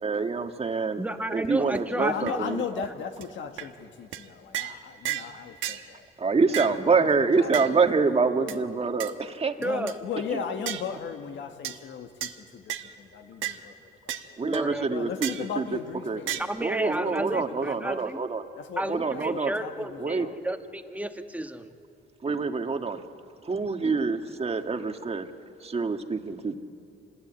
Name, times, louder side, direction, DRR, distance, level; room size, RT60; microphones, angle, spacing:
voice 1, 0.0-1.0 1.3-2.6 6.2-9.5 14.4-15.3 15.6-15.7 16.1-16.2 16.6-18.4 18.9-19.5 20.0-20.3 22.2-23.0 23.4-25.3 25.6-26.6, right 4 dB, 30° right, 6 dB, 1.6 m, -26 dB
voice 2, 1.0-2.9 9.6-9.9 14.4-14.9 16.5-18.2 18.8-21.7, right 1 dB, 5° right, 7 dB, 1.4 m, -32 dB
sound 1, 1.4-1.5 1.7-1.8 2.3-2.4 2.8-2.9 3.2-3.3 3.6-3.7 4.1-4.3 4.5-4.8 5.1-5.3 5.6-5.8 6.5-6.8 7.5-7.7 8.5-8.6 9.0-9.1 9.6-10.0 10.7-10.9 11.6-11.8 12.2-12.3 12.7-12.9 13.4-13.6 14.1-14.3 14.5-14.6 15.2-15.5 16.3-16.4, right 12 dB, 75° right, 1.2 m, -33 dB
voice 3, 1.9-6.1 6.4-7.8 9.6-14.4 14.9-18.1 18.6-20.4 24.6-24.7, left 7 dB, 70° left, 6 dB, 1.7 m, -37 dB
26.0 x 20.5 x 8.8 m, 2.5 s
cardioid pair, 90°, 20 cm